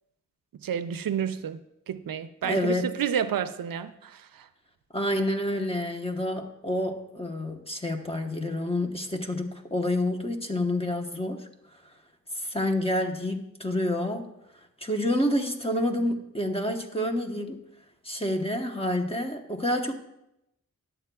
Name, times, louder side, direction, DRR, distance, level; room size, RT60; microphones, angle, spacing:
voice 1, 0.6-1.6 1.9-4.5, right 8 dB, 80° right, 0.5 m, -30 dB
voice 2, 2.4-2.9 4.9-11.5 12.3-14.3 14.8-17.6 18.0-19.9, left 1 dB, 15° left, 1.0 m, -28 dB
11.5 x 7.9 x 2.3 m
wide cardioid pair, 55°, 34 cm